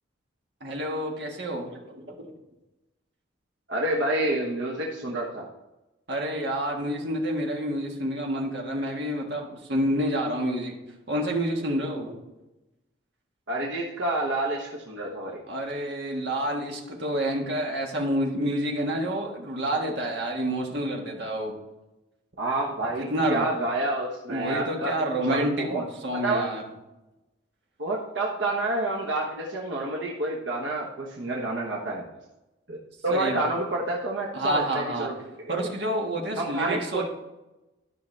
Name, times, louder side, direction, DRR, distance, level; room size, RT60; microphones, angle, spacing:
voice 1, 0.6-2.3 6.1-10.7 11.1-12.2 15.5-21.5 23.0-23.6 24.3-26.6 33.1-33.5 34.3-35.1 35.5-37.0, right 1 dB, 60° right, 0 dB, 1.7 m, -28 dB
voice 2, 3.7-5.4 13.5-15.4 22.4-24.9 25.3-25.8 26.1-26.5 27.8-32.0 32.7-32.8 33.0-35.1 35.6-35.7 36.4-37.0, right 2 dB, 80° right, -2 dB, 1.2 m, -28 dB
12.5 x 5.7 x 3.3 m, 1.0 s
head